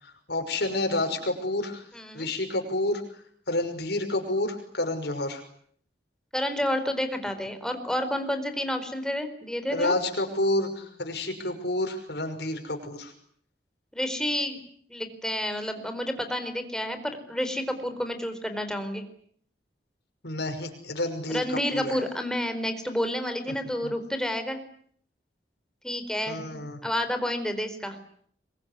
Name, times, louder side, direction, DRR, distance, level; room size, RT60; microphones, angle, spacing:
voice 1, 0.0-1.9 2.1-5.4 9.7-13.1 20.2-22.0 23.8-23.9 26.3-26.8, left 1 dB, 65° left, 5 dB, 5.8 m, -29 dB
voice 2, 1.9-2.3 6.3-9.9 13.9-14.6 14.9-19.0 21.3-24.6 25.8-26.4 26.8-28.0, left 1 dB, 5° left, 7 dB, 4.4 m, -30 dB
26.0 x 23.0 x 9.7 m, 0.63 s
head